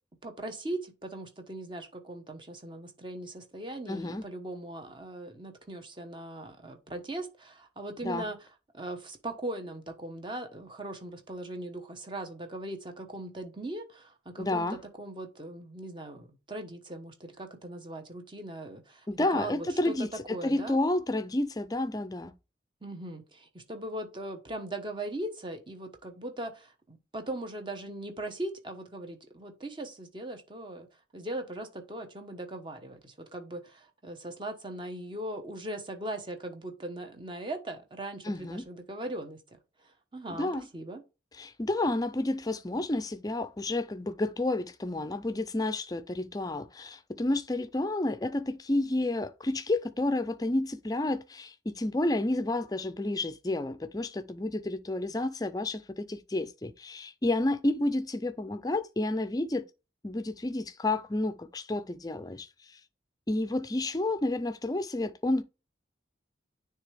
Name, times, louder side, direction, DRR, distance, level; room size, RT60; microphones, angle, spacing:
voice 1, 0.2-8.4 8.7-20.8 22.8-30.9 31.1-39.6 39.8-41.0, right 1 dB, 25° right, 1.0 m, -39 dB
voice 2, 3.9-4.2 8.0-8.3 14.4-14.8 19.1-20.1 20.4-22.3 38.2-38.6 40.3-40.7 41.4-59.6 60.0-62.5 63.3-65.4, left 2 dB, 20° left, 0.4 m, -30 dB
9.6 x 3.4 x 3.3 m
head